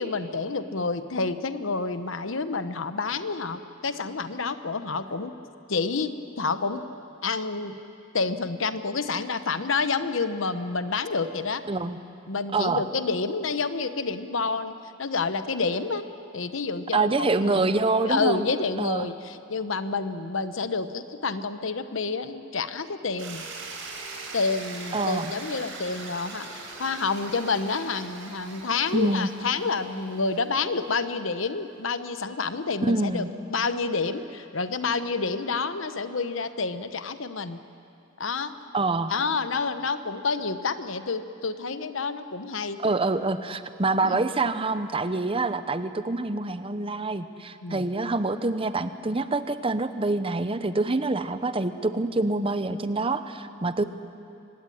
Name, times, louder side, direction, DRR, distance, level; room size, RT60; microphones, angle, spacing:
voice 1, 0.0-5.3 5.7-6.8 7.2-7.7 8.1-11.6 12.3-14.7 15.0-16.0 16.3-17.6 18.0-23.4 24.3-33.2 33.5-37.6 38.2-38.5 39.1-42.8 44.0-44.2 47.6-47.9, left 4 dB, 75° left, 11 dB, 1.0 m, -29 dB
voice 2, 11.7-12.0 12.5-12.8 16.9-18.5 18.8-19.1 24.9-25.3 28.9-29.3 32.8-33.3 38.7-39.1 42.8-53.8, right 3 dB, 25° right, 11 dB, 0.8 m, -26 dB
sound 1, 23.2-31.2, right 3 dB, 70° right, 4.7 m, -41 dB
24.5 x 17.0 x 10.0 m, 2.7 s
head